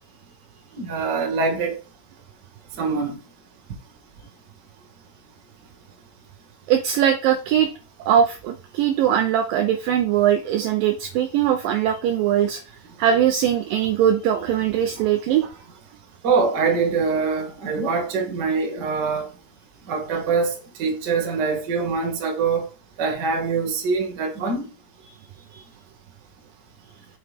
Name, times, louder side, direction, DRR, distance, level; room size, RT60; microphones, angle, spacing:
voice 1, 0.7-1.8 2.8-3.2 16.2-19.3 19.9-22.7 23.0-24.7, right 4 dB, 65° right, 1.0 m, -24 dB
voice 2, 6.7-7.7 8.1-12.6 13.0-15.5 25.5-25.6, right 9 dB, 80° right, 2.0 m, -21 dB
6.6 x 5.0 x 3.4 m
omnidirectional pair, 4.6 m